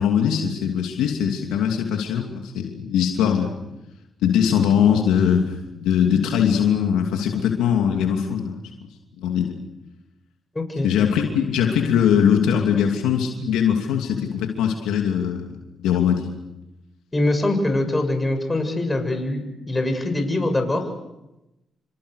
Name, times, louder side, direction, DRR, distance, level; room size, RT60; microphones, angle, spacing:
voice 1, 0.0-3.5 4.2-8.6 9.2-9.6 10.8-15.5 15.8-16.3, left 8 dB, 85° left, 3 dB, 2.8 m, -21 dB
voice 2, 10.5-10.9 17.1-20.9, left 2 dB, 25° left, 5 dB, 7.6 m, -23 dB
29.0 x 25.0 x 6.7 m, 0.94 s
supercardioid pair, 50°, 0 cm